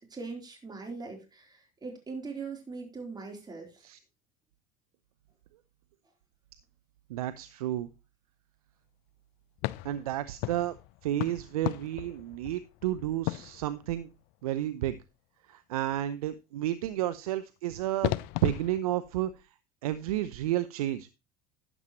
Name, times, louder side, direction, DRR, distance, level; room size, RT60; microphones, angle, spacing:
voice 1, 0.1-3.9, right 4 dB, 20° right, 2 dB, 3.9 m, -41 dB
voice 2, 7.1-7.9 9.8-10.8 11.0-14.1 14.4-15.0 15.5-19.5 19.8-21.1, right 13 dB, 80° right, 13 dB, 0.7 m, -31 dB
sound 1, 9.6-14.3 17.4-17.5 18.0-18.8, left 18 dB, 60° left, 0.6 m, -36 dB
12.0 x 9.0 x 3.1 m, 0.27 s
hypercardioid pair, 75°, 19 cm